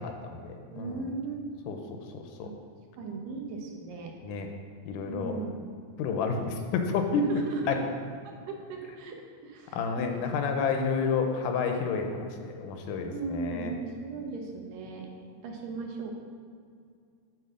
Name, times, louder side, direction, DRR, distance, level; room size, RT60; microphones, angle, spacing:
voice 1, 0.0-1.0 1.7-2.5 4.2-4.5 4.9-5.3 6.0-7.3 7.7-7.8 9.7-13.7, left 5 dB, 80° left, 4 dB, 2.2 m, -30 dB
voice 2, 0.7-1.4 2.4-2.6 2.9-4.1 5.1-5.7 6.3-6.6 6.9-7.0 7.3-7.8 8.2-10.2 13.0-15.1 15.4-16.1, right 4 dB, 85° right, 1 dB, 2.8 m, -37 dB
8.3 x 4.4 x 6.3 m, 2.2 s
omnidirectional pair, 3.8 m